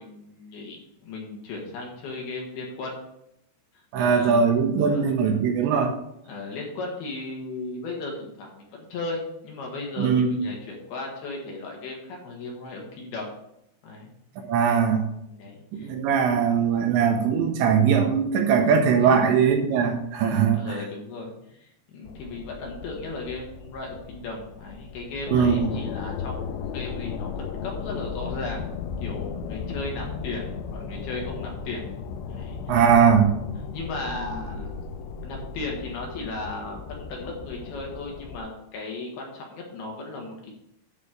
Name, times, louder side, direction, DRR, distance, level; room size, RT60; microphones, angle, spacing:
voice 1, 0.0-3.0 4.0-4.5 4.8-5.1 6.3-13.3 13.8-14.1 15.4-15.9 19.0-19.2 20.3-31.8 32.3-32.6 33.7-34.8 35.2-40.5, left 3 dB, 65° left, -1 dB, 3.0 m, -36 dB
voice 2, 3.9-6.0 10.0-10.4 14.4-15.0 15.7-20.6 25.3-25.7 32.7-33.3, right 6 dB, 75° right, 4 dB, 2.9 m, -20 dB
sound 1, 22.1-38.4, left 6 dB, 85° left, 2.5 m, -35 dB
11.0 x 4.1 x 6.5 m, 0.79 s
omnidirectional pair, 5.6 m